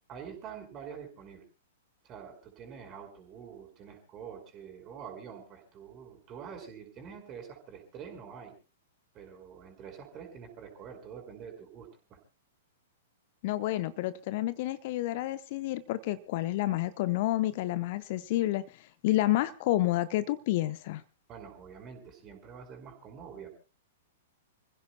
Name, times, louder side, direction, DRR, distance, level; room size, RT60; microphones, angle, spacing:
voice 1, 0.1-1.4 2.0-8.5 9.1-12.2 21.3-23.5, right 7 dB, 30° right, 3 dB, 5.0 m, -46 dB
voice 2, 13.4-21.0, left 16 dB, 45° left, 15 dB, 0.8 m, -29 dB
29.5 x 16.0 x 2.2 m, 0.32 s
figure-of-eight pair, 105°, 0 cm